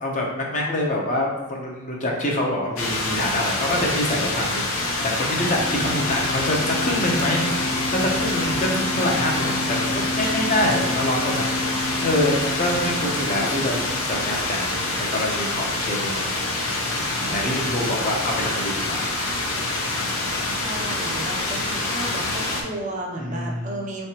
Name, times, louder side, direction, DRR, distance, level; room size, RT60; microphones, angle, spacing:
voice 1, 0.0-7.4 7.9-13.8 14.1-14.6 15.0-16.6 17.3-19.1 23.2-23.7, left 1 dB, 35° left, -1 dB, 0.7 m, -26 dB
sound 1, 2.8-22.6, left 2 dB, 80° left, 0.8 m, -26 dB
sound 2, 5.4-15.0, left 1 dB, 65° left, 1.1 m, -31 dB
voice 2, 20.6-24.1, right 1 dB, 35° right, 0 dB, 0.5 m, -33 dB
4.7 x 3.2 x 2.9 m, 1.2 s
head